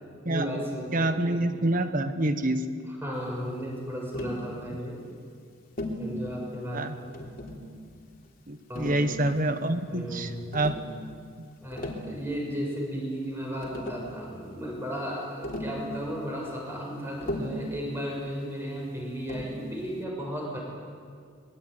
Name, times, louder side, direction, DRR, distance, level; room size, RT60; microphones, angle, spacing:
voice 1, 0.3-1.5 3.0-5.0 6.0-7.3 8.7-9.1 9.9-10.5 11.6-20.6, equal, 10° right, -1 dB, 6.5 m, -35 dB
voice 2, 0.9-2.6 6.7-7.0 8.5-10.8 11.4-11.5, right 1 dB, 40° right, 9 dB, 1.4 m, -27 dB
Tap, 4.1-4.4 5.8-6.1 7.1-7.7 8.7-9.5 10.5-10.9 11.6-12.1 13.3-13.4 13.6-14.1 15.4-15.8 17.2-17.7 19.3-19.6, left 1 dB, 40° left, 3.5 m, -36 dB
25.0 x 22.0 x 9.6 m, 2.2 s
head